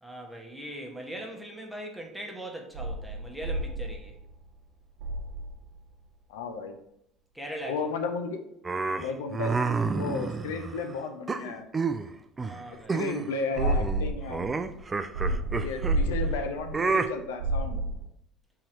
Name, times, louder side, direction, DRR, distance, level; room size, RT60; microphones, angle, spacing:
voice 1, 0.0-4.1 7.3-7.8 12.4-13.0 15.3-15.6, right 1 dB, ahead, 0 dB, 1.1 m, -40 dB
sound 1, 2.7-4.6 5.0-5.9 13.6-18.1, right 2 dB, 65° right, 0.9 m, -31 dB
voice 2, 6.3-6.8 7.7-8.4 9.0-9.5 9.9-11.7 12.9-14.6 15.0-17.8, left 4 dB, 90° left, 6 dB, 0.4 m, -34 dB
sound 2, 8.6-10.8 11.3-12.1 12.4-12.6 12.9-13.3 13.6-16.0 16.7-17.1, right 4 dB, 25° right, 0.3 m, -29 dB
3.8 x 3.0 x 4.4 m, 0.76 s
supercardioid pair, 85°, 0 cm